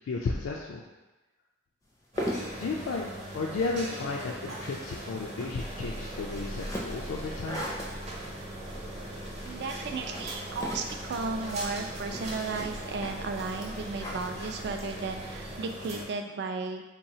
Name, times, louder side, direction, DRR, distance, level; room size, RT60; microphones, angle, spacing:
voice 1, 0.1-0.8 2.6-7.6, left 3 dB, 85° left, -2 dB, 0.3 m, -33 dB
sound 1, 1.9-15.4, equal, 15° left, 0.4 m, -41 dB
sound 2, 2.1-16.0, right 1 dB, 35° right, 0.7 m, -41 dB
sound 3, 5.5-15.6, right 1 dB, 80° right, 0.8 m, -44 dB
voice 2, 9.4-16.8, right 4 dB, 55° right, 6 dB, 0.3 m, -34 dB
3.9 x 2.9 x 2.7 m, 1.1 s
head